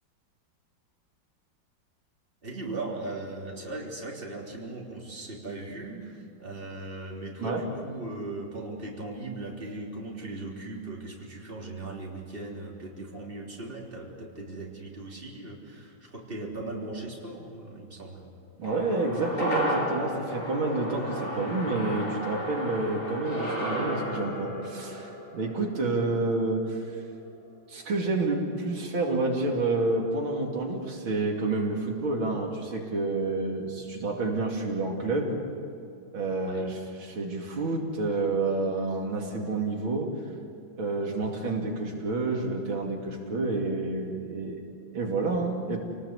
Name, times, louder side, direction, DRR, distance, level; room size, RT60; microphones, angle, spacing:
voice 1, 2.4-18.3 36.5-36.7 41.2-41.3, right 2 dB, 25° right, -2 dB, 3.7 m, -38 dB
sound 1, 18.6-27.1 27.4-27.5, equal, 40° left, 6.4 m, -33 dB
voice 2, 18.6-27.0 27.7-35.4 36.1-40.1 40.8-44.6 44.9-45.8, right 2 dB, 85° right, 0 dB, 3.4 m, -29 dB
28.0 x 19.5 x 8.2 m, 2.5 s
omnidirectional pair, 2.2 m